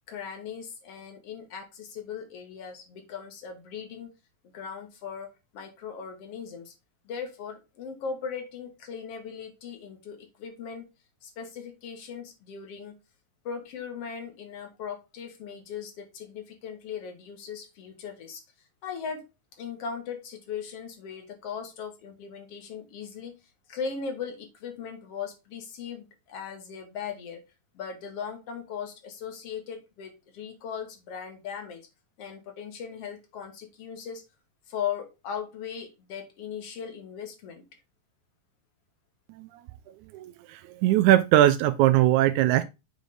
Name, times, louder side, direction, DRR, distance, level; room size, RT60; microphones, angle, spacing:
voice 1, 0.1-4.1 4.5-6.7 7.0-10.8 11.2-13.0 13.4-18.4 18.8-19.3 19.6-23.4 23.7-27.5 27.7-31.9 32.2-34.2 34.7-37.6, left 7 dB, 50° left, 2.4 m, -38 dB
voice 2, 40.1-42.6, right 14 dB, 80° right, 1.8 m, -21 dB
7.8 x 5.2 x 3.8 m
omnidirectional pair, 3.9 m